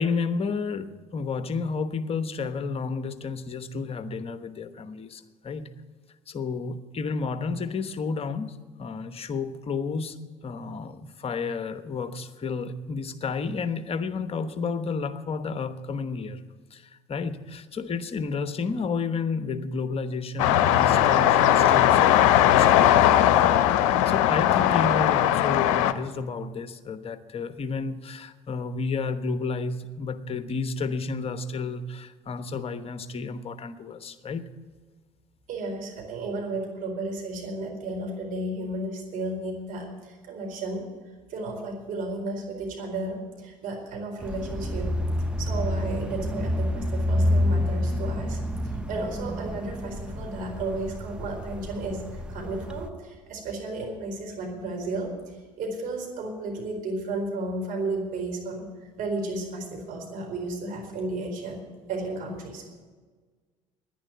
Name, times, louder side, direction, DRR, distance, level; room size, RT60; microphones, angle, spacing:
voice 1, 0.0-5.7 6.3-16.4 16.7-34.4, left 4 dB, 35° left, 10 dB, 1.1 m, -31 dB
sound 1, 20.4-25.9, left 11 dB, 70° left, 0.7 m, -19 dB
voice 2, 35.5-40.8 41.3-44.9 45.4-58.7 59.0-61.6 61.9-62.7, right 2 dB, 55° right, 1 dB, 4.4 m, -33 dB
sound 2, 44.2-52.9, left 1 dB, 5° right, 1.0 m, -28 dB
10.5 x 10.0 x 9.4 m, 1.4 s
hypercardioid pair, 65°, 17 cm